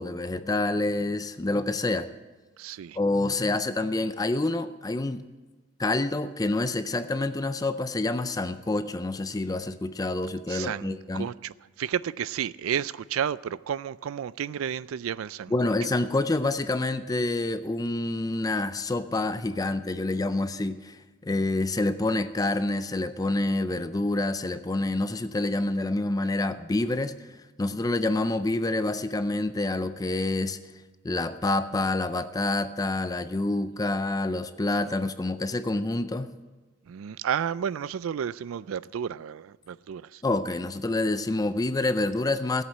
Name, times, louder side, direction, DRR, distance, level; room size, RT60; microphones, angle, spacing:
voice 1, 0.0-2.1 3.0-5.2 5.8-11.3 15.5-27.2 27.6-30.6 31.0-36.3 40.2-42.6, left 2 dB, 20° left, 0.4 m, -27 dB
voice 2, 2.6-3.0 10.5-15.7 36.9-40.2, right 8 dB, 85° right, 0.4 m, -32 dB
14.5 x 8.1 x 8.5 m
head